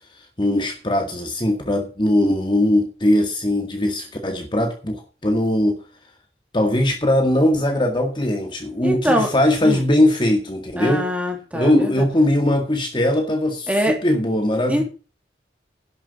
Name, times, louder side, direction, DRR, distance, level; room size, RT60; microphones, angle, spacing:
voice 1, 0.4-5.8 6.5-11.1 11.5-14.8, left 1 dB, 25° left, 3 dB, 1.9 m, -20 dB
voice 2, 8.8-9.3 9.6-9.8 10.8-12.0 13.7-13.9 14.7-14.8, equal, 10° right, 1 dB, 3.0 m, -23 dB
11.0 x 7.2 x 7.0 m, 0.35 s
head